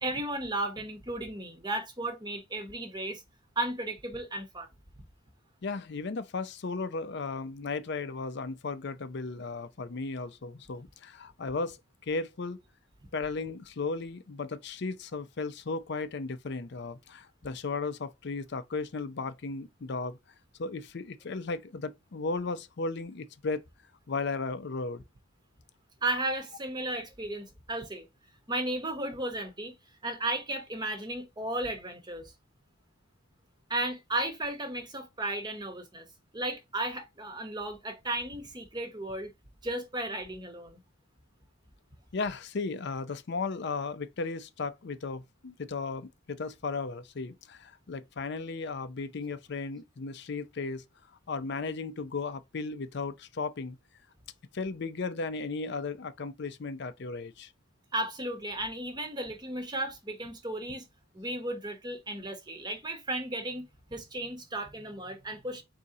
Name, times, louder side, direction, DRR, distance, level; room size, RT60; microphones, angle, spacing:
voice 1, 0.0-3.2 3.6-4.7 26.0-28.0 28.5-29.7 30.0-32.3 33.7-36.1 36.3-39.3 39.6-40.8 57.9-60.9 61.1-65.6, right 1 dB, 20° right, 0.9 m, -34 dB
voice 2, 5.6-11.8 12.0-12.6 13.1-20.2 20.6-23.6 24.1-25.0 42.1-50.8 51.3-53.8 54.5-57.5, left 4 dB, 55° left, 0.5 m, -35 dB
4.1 x 2.8 x 3.7 m
head